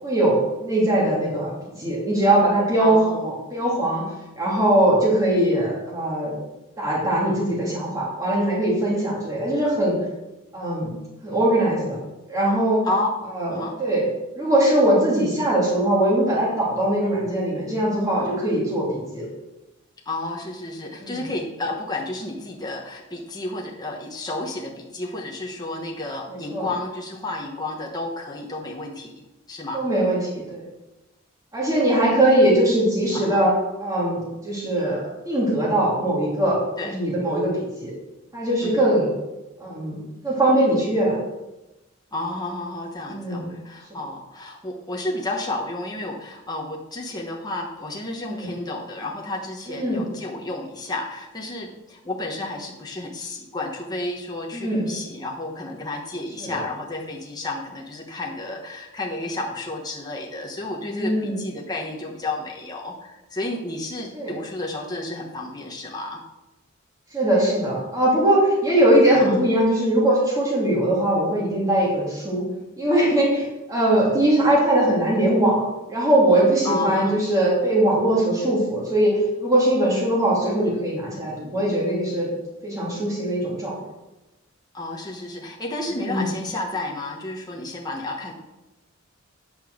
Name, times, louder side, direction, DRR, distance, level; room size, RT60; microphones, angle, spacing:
voice 1, 0.0-4.0 4.4-6.3 6.8-10.0 10.5-11.0 11.2-12.0 12.3-12.8 13.3-14.0 14.4-19.3 21.0-21.2 26.3-26.7 29.7-30.7 31.5-33.5 33.8-35.0 35.2-36.6 36.8-37.9 38.3-39.1 39.6-39.9 40.2-41.2 43.1-43.5 48.3-48.5 49.7-50.0 54.5-54.9 56.4-56.6 60.8-61.4 64.1-64.3 67.1-72.4 72.8-79.1 79.4-82.3 82.6-83.8 85.9-86.3, right 1 dB, 15° right, -6 dB, 2.8 m, -21 dB
voice 2, 2.8-3.2 12.8-13.1 13.4-13.8 20.0-29.1 29.5-29.9 33.1-33.5 36.8-37.0 38.6-38.9 42.1-66.2 69.1-69.4 76.6-77.1 84.7-88.3, left 2 dB, 20° left, -2 dB, 1.1 m, -31 dB
9.1 x 5.6 x 6.3 m, 1.0 s
head